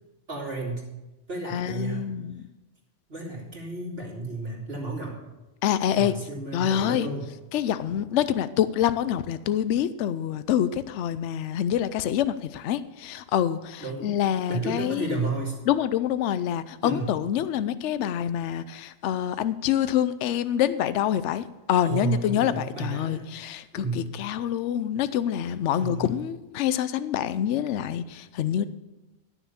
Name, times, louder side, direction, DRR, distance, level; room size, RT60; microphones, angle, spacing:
voice 1, 0.3-0.8 1.3-2.0 3.1-5.2 5.9-7.3 13.8-14.2 14.5-15.5 16.8-17.1 21.8-23.3 23.7-24.2 25.4-26.2, right 2 dB, 55° right, -3 dB, 3.1 m, -32 dB
voice 2, 1.5-2.4 5.6-6.1 6.5-7.1 7.5-15.2 15.7-28.6, left 10 dB, 80° left, 14 dB, 0.9 m, -26 dB
12.0 x 7.0 x 7.0 m, 1.0 s
omnidirectional pair, 1.2 m